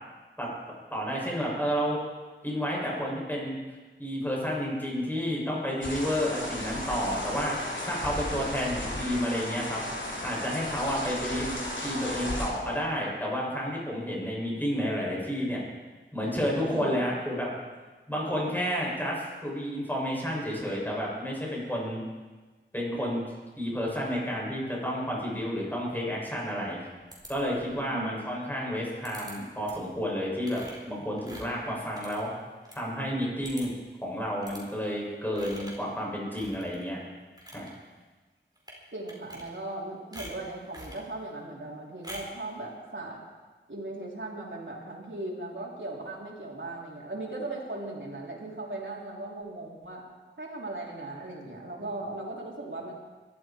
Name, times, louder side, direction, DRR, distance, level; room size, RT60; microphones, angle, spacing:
voice 1, 0.9-2.0 2.4-3.5 4.0-7.6 7.9-9.8 10.2-11.4 11.8-15.6 16.1-17.5 18.1-22.0 22.7-23.2 23.6-26.8 27.3-32.3 32.8-33.7 34.0-37.0 37.5-37.7, equal, 10° left, -4 dB, 7.1 m, -30 dB
sound 1, 5.8-12.5, left 1 dB, 70° left, 3.4 m, -35 dB
voice 2, 16.7-17.0 18.3-18.5 27.9-28.1 38.9-43.2 43.7-50.0 50.4-52.9, right 2 dB, 75° right, -3 dB, 3.8 m, -38 dB
sound 2, 27.1-27.8 29.0-29.3 29.7-29.9 30.4-32.8 33.1-33.2 33.4-33.9 34.4-34.6 35.3-35.9 36.3-36.9 37.2-37.7 38.6-38.8 39.1-39.8 40.1-41.0 42.0-42.4, equal, 20° right, 4.5 m, -45 dB
22.0 x 13.0 x 4.7 m, 1.3 s
wide cardioid pair, 45°, 20 cm